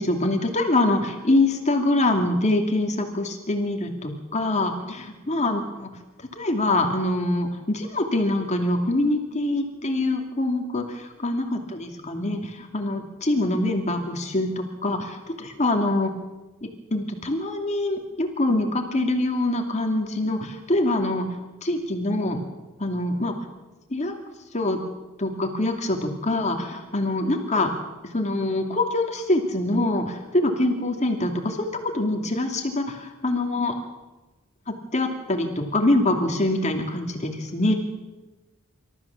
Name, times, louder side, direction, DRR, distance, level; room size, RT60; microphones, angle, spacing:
voice 1, 0.0-5.9 6.3-16.1 16.6-21.3 21.6-22.4 22.8-23.4 23.9-24.1 24.5-24.8 25.2-27.7 28.1-31.7 31.9-33.8 34.9-37.7, left 2 dB, 35° left, 4 dB, 2.6 m, -24 dB
26.0 x 14.0 x 7.3 m, 1.2 s
head